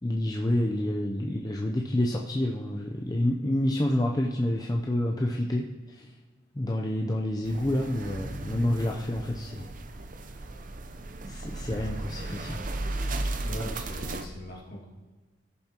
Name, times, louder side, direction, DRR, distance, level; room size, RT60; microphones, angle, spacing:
voice 1, 0.0-6.1 6.5-9.7 11.3-12.6, left 1 dB, 20° left, -1 dB, 0.5 m, -28 dB
sound 1, 7.4-14.3, right 2 dB, 40° right, 0.6 m, -35 dB
voice 2, 13.4-14.9, equal, 45° left, -3 dB, 2.0 m, -40 dB
16.0 x 7.1 x 2.9 m, 1.4 s
head